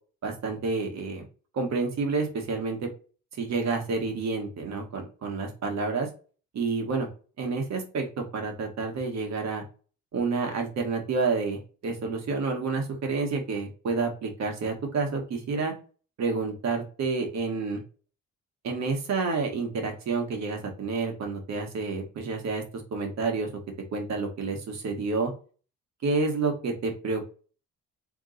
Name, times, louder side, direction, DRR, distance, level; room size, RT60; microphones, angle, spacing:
voice 1, 0.2-1.2 1.5-2.9 3.4-6.1 6.5-7.1 7.4-8.1 8.3-9.6 10.1-15.7 16.2-17.8 18.6-22.6 22.9-23.5 23.9-25.3 26.0-27.2, right 4 dB, 60° right, 3 dB, 1.4 m, -29 dB
3.5 x 3.0 x 3.8 m, 0.36 s
cardioid pair, 90°, 30 cm